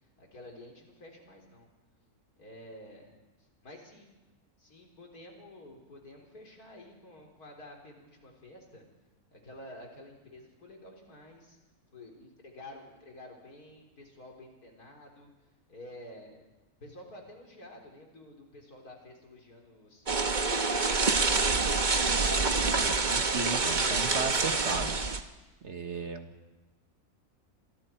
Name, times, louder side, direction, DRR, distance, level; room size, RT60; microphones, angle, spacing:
voice 1, 0.2-1.7 2.4-3.2 3.6-4.1 4.6-8.8 9.3-11.6 11.9-15.3 15.7-16.5 16.8-21.2 21.8-22.2, left 1 dB, 80° left, 1 dB, 4.6 m, -50 dB
sound 1, 20.1-25.2, right 3 dB, 35° right, 1.2 m, -27 dB
voice 2, 22.8-25.0 25.6-26.3, right 4 dB, 50° right, 6 dB, 1.8 m, -36 dB
28.0 x 24.0 x 4.6 m, 1.1 s
omnidirectional pair, 1.6 m